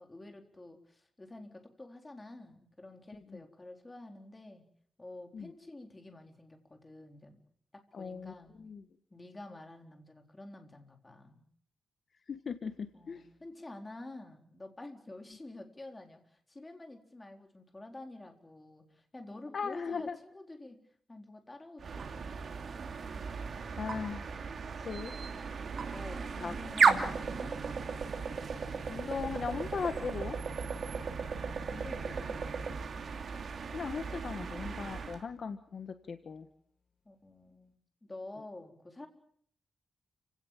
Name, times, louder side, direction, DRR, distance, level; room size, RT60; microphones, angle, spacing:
voice 1, 0.0-4.6 5.0-7.4 7.7-8.5 9.1-11.4 12.9-20.8 21.1-22.3 25.8-27.6 31.7-32.7 37.1-37.7 38.0-39.1, left 2 dB, 15° left, 4 dB, 4.1 m, -49 dB
voice 2, 7.9-8.3 8.6-8.8 12.3-13.2 19.5-20.2 23.8-24.3 24.9-25.1 26.4-26.5 26.9-27.0 28.9-30.3 33.7-36.5, left 5 dB, 50° left, 8 dB, 1.5 m, -38 dB
sound 1, 21.8-35.2, right 5 dB, 55° right, 2.9 m, -35 dB
30.0 x 17.5 x 7.5 m, 0.63 s
wide cardioid pair, 140°, 0 cm